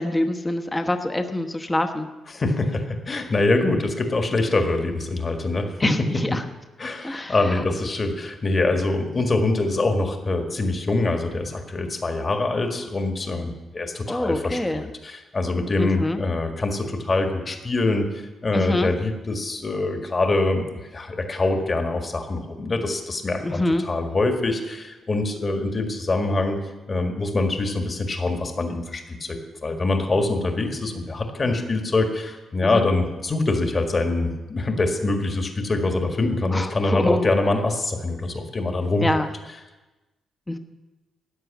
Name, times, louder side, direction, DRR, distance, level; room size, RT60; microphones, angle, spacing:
voice 1, 0.0-2.1 5.8-6.4 7.0-7.6 14.1-14.8 15.8-16.2 18.5-18.9 23.4-23.8 32.6-32.9 36.5-37.3 39.0-39.3 40.5-40.6, left 1 dB, 15° left, 6 dB, 1.0 m, -25 dB
voice 2, 2.3-6.4 6.8-26.6 26.9-39.1, left 2 dB, 35° left, 4 dB, 1.8 m, -24 dB
14.0 x 9.6 x 7.3 m, 1.1 s
cardioid pair, 100°, 0 cm